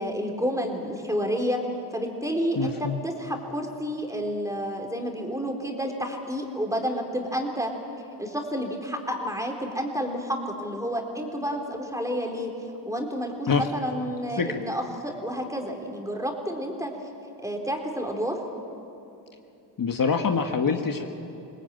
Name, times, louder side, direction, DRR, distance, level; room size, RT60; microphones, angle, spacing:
voice 1, 0.0-1.6 1.9-7.7 8.2-12.5 12.8-16.9 17.4-18.4, equal, 5° right, 2 dB, 4.0 m, -30 dB
voice 2, 2.6-3.0 13.5-13.7 14.4-14.6 19.8-21.1, left 5 dB, 50° left, 4 dB, 1.6 m, -25 dB
22.5 x 19.0 x 9.2 m, 2.8 s
cardioid pair, 60°, 44 cm